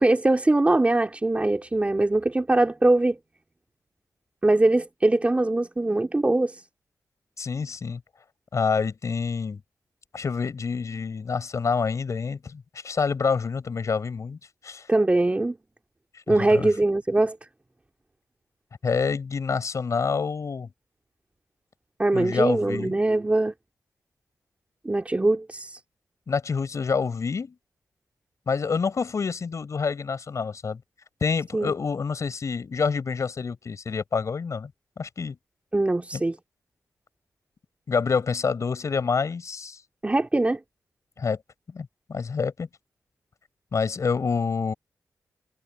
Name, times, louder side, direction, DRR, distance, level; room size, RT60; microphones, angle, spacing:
voice 1, 0.0-3.2 4.4-6.6 14.9-15.6 16.3-17.4 22.0-23.5 24.8-25.8 31.5-31.7 35.7-36.3 40.0-40.6, right 2 dB, 20° right, 2.5 m, -22 dB
voice 2, 7.4-8.0 8.5-9.6 10.1-14.4 14.6-14.9 16.3-16.7 18.8-20.7 22.1-22.9 26.3-27.5 28.5-30.8 31.2-34.7 35.0-35.4 36.1-36.2 37.9-39.8 41.2-41.4 41.7-42.7 43.7-44.7, left 5 dB, 60° left, 6.7 m, -27 dB
cardioid pair, 70°, 6 cm